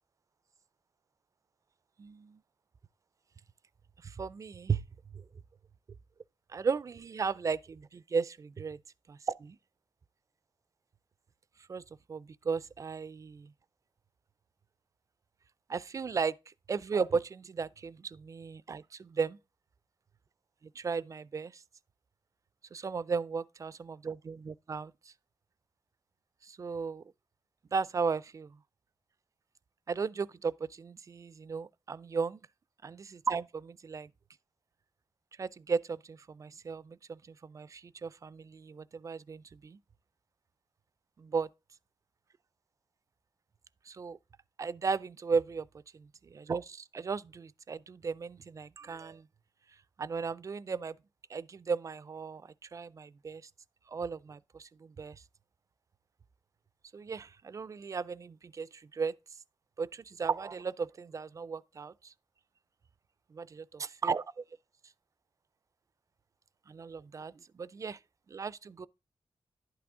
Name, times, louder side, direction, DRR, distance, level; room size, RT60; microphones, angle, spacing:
voice 1, 2.0-2.4 4.0-4.9 5.1-5.2 6.5-8.8 9.3-9.6 11.7-11.8 12.1-13.4 15.7-19.4 20.8-21.6 22.7-25.1 26.4-27.0 27.7-28.6 29.9-32.4 32.8-34.1 35.4-39.8 41.2-41.5 43.9-44.2 44.6-45.7 46.3-49.3 50.0-51.0 51.3-53.4 53.9-55.2 56.9-59.1 59.8-62.1 63.3-64.4 66.7-68.0 68.3-68.9, right 5 dB, 35° right, 0.3 m, -35 dB
11.0 x 6.0 x 3.6 m
wide cardioid pair, 135°, 10 cm